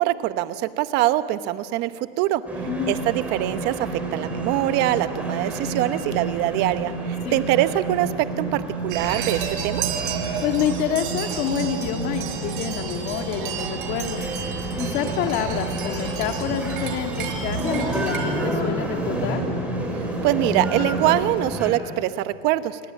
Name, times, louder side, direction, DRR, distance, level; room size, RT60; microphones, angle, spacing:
voice 1, 0.0-2.4 2.9-9.8 20.2-22.8, right 14 dB, 35° right, 12 dB, 1.1 m, -23 dB
sound 1, 2.5-21.7, right 2 dB, 5° right, 5.4 m, -29 dB
sound 2, 8.9-18.2, right 8 dB, 60° right, 5.2 m, -32 dB
voice 2, 10.4-14.2 14.8-19.4, left 8 dB, 35° left, 5 dB, 2.4 m, -27 dB
29.5 x 23.5 x 8.5 m, 2.4 s
supercardioid pair, 155°, 29 cm